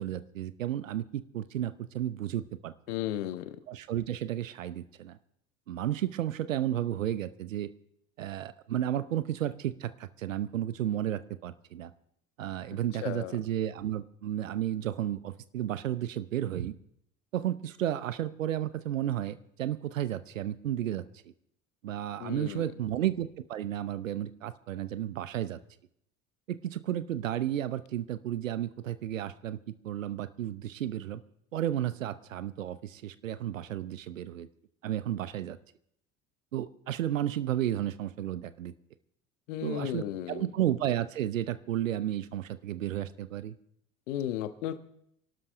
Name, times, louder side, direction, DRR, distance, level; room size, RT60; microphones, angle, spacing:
voice 1, 0.0-2.7 3.7-5.2 5.7-7.7 8.2-11.9 12.4-16.7 17.3-21.0 21.8-25.6 26.5-29.6 29.8-31.2 31.5-34.5 34.8-35.6 36.5-38.7 39.6-43.5, right 11 dB, 75° right, 15 dB, 0.9 m, -32 dB
voice 2, 2.9-3.6 12.7-13.3 22.2-22.7 39.5-40.4 44.1-44.8, left 12 dB, 65° left, 10 dB, 1.4 m, -35 dB
26.5 x 12.0 x 3.4 m, 0.71 s
figure-of-eight pair, 65°, 39 cm